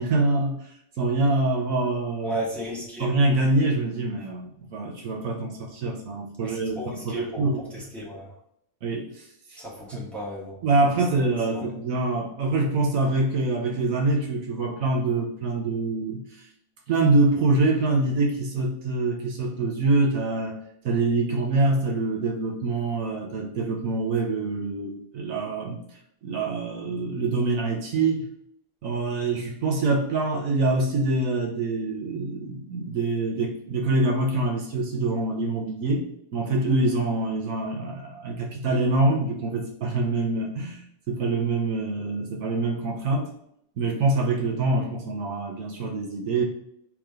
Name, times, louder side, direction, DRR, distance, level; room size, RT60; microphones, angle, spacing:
voice 1, 0.0-2.4 3.0-7.8 8.8-9.6 9.9-10.0 10.6-16.5 16.9-25.8 26.2-28.3 28.8-36.0 36.3-40.8 41.1-43.3 43.8-46.4, right 2 dB, 70° right, 0 dB, 1.2 m, -25 dB
voice 2, 2.2-3.1 6.4-7.5 7.7-8.3 9.6-10.6 11.5-11.7, equal, ahead, -6 dB, 1.3 m, -34 dB
3.6 x 3.0 x 4.8 m, 0.73 s
omnidirectional pair, 1.5 m